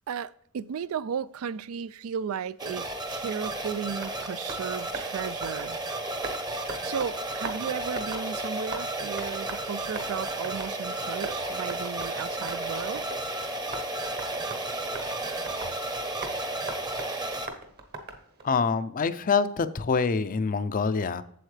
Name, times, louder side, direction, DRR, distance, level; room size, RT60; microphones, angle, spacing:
voice 1, 0.1-5.8 6.8-13.0, right 7 dB, 85° right, 0.4 m, -35 dB
sound 1, 2.6-17.5, right 2 dB, 20° right, 0.8 m, -33 dB
Tap, 3.1-18.6, right 2 dB, 50° right, 1.1 m, -42 dB
voice 2, 18.4-21.2, left 5 dB, 40° left, 0.5 m, -25 dB
7.8 x 7.2 x 3.3 m
head